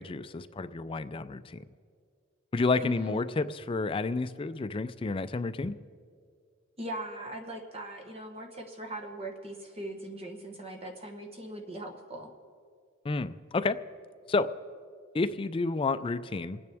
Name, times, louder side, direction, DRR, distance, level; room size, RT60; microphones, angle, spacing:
voice 1, 0.0-1.6 2.5-5.8 13.0-13.8 14.3-14.5 15.1-16.6, left 3 dB, 25° left, 12 dB, 0.4 m, -30 dB
voice 2, 2.8-3.2 6.8-12.3, right 1 dB, 30° right, 3 dB, 1.1 m, -40 dB
28.0 x 9.6 x 3.5 m, 2.2 s
head